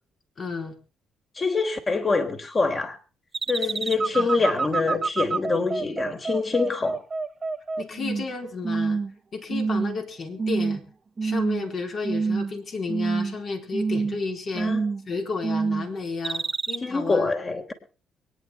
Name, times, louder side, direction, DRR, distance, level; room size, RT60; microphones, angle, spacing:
voice 1, 0.4-0.7 4.1-4.5 7.8-9.0 9.3-10.8 11.2-14.7 15.1-17.3, left 4 dB, 55° left, 4 dB, 4.0 m, -32 dB
voice 2, 1.4-3.0 3.5-7.0 14.6-14.8 16.8-17.7, left 4 dB, 35° left, 5 dB, 3.7 m, -25 dB
sound 1, 3.3-8.3 8.6-9.1 9.5-10.0 10.4-10.8 11.2-11.7 12.0-12.6 12.9-13.4 13.7-14.2 14.5-15.1 15.4-15.9 16.2-16.8, right 4 dB, 35° right, 0.7 m, -27 dB
23.5 x 10.0 x 4.4 m, 0.36 s
supercardioid pair, 65°, 0 cm